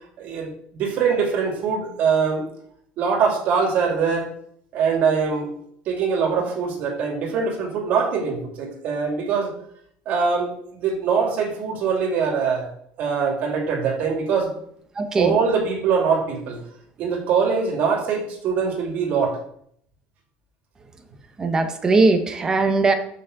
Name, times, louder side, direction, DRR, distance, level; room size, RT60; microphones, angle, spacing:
voice 1, 0.2-2.4 3.0-4.3 4.7-5.5 5.9-9.5 10.1-12.7 13.0-14.5 15.1-16.6 17.0-19.4, right 5 dB, 45° right, 1 dB, 2.6 m, -23 dB
voice 2, 14.9-15.4 21.4-22.9, right 3 dB, 20° right, 7 dB, 1.0 m, -19 dB
6.9 x 6.2 x 6.5 m, 0.66 s
cardioid pair, 160°, 4 cm